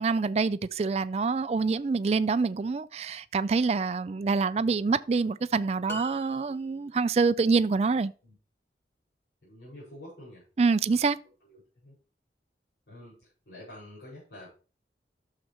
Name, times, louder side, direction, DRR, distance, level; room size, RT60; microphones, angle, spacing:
voice 1, 0.0-8.1 10.6-11.2, right 4 dB, 35° right, 0.3 m, -26 dB
sound 1, 5.9-7.0, left 2 dB, 15° left, 0.6 m, -43 dB
voice 2, 9.4-10.4 10.8-11.0 11.4-12.0 12.9-14.5, left 1 dB, 70° left, 5.2 m, -48 dB
11.5 x 6.7 x 2.9 m
head